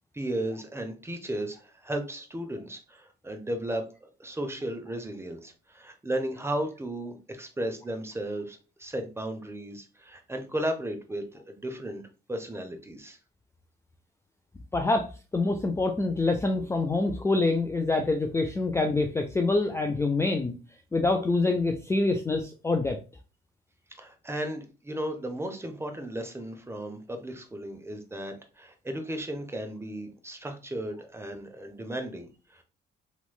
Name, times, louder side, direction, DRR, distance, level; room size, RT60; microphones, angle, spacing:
voice 1, 0.1-12.0 12.3-13.2 24.0-32.6, right 1 dB, 15° right, 5 dB, 0.7 m, -35 dB
voice 2, 14.7-20.6 20.9-23.0, left 3 dB, 15° left, 5 dB, 0.4 m, -26 dB
3.1 x 3.0 x 2.2 m, 0.34 s
cardioid pair, 90°, 20 cm